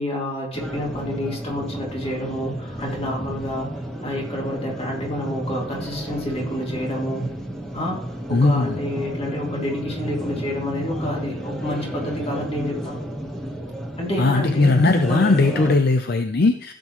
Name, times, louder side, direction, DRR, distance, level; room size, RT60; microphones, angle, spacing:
voice 1, 0.0-3.7 4.0-7.2 7.7-13.0 14.0-14.8 15.1-15.3, left 1 dB, 30° left, -2 dB, 2.4 m, -29 dB
sound 1, 0.5-15.8, right 1 dB, 5° left, 1.1 m, -31 dB
voice 2, 8.3-8.8 14.2-16.7, left 3 dB, 50° left, 7 dB, 0.5 m, -18 dB
16.0 x 7.5 x 3.0 m, 0.65 s
head